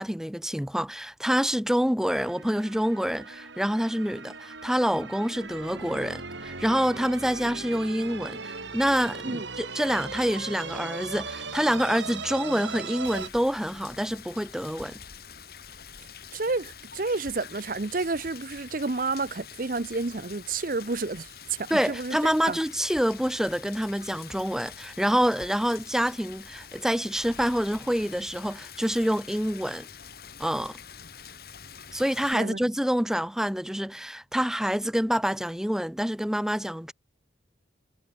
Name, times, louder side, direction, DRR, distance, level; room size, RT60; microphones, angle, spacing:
voice 1, 0.0-15.0 21.7-29.9 30.4-30.8 31.9-36.9, equal, 5° right, 0.7 m, -27 dB
sound 1, 2.0-13.3, right 4 dB, 90° right, 7.9 m, -38 dB
Rain, 13.0-32.3, left 7 dB, 55° left, 2.9 m, -46 dB
voice 2, 16.3-22.2 22.5-22.6 32.3-32.7, right 3 dB, 50° right, 0.8 m, -30 dB
head